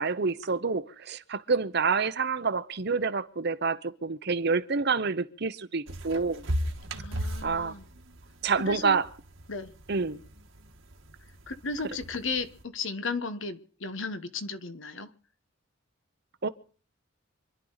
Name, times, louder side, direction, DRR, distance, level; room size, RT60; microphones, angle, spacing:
voice 1, 0.0-6.4 7.4-7.8 8.4-9.1 9.9-10.2 16.4-16.5, right 4 dB, 55° right, 0.8 m, -28 dB
sound 1, 5.9-12.6, equal, 70° right, 1.6 m, -38 dB
voice 2, 6.9-7.9 8.6-9.0 9.5-9.7 11.5-15.1, left 4 dB, 65° left, 1.2 m, -35 dB
26.5 x 11.0 x 4.0 m
head